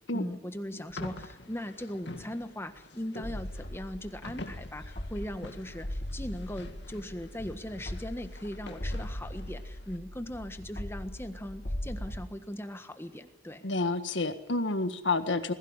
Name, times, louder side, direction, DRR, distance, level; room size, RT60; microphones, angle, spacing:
voice 1, 0.1-13.6, left 1 dB, 15° left, 8 dB, 1.5 m, -39 dB
sound 1, 0.9-10.0, left 2 dB, 65° left, 2.2 m, -47 dB
sound 2, 3.2-12.2, left 1 dB, 40° left, 1.7 m, -39 dB
voice 2, 13.6-15.5, left 3 dB, 90° left, 9 dB, 1.7 m, -29 dB
21.5 x 16.5 x 9.8 m, 0.88 s
head